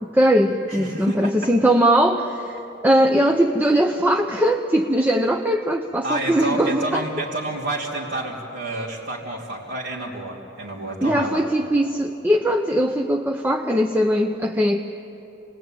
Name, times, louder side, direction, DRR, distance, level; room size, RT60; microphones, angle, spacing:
voice 1, 0.0-7.0 11.0-14.8, equal, 10° right, 3 dB, 0.8 m, -20 dB
voice 2, 0.7-1.5 3.2-3.3 6.0-11.4, right 1 dB, 65° right, -7 dB, 2.9 m, -29 dB
28.0 x 20.5 x 9.1 m, 3.0 s
head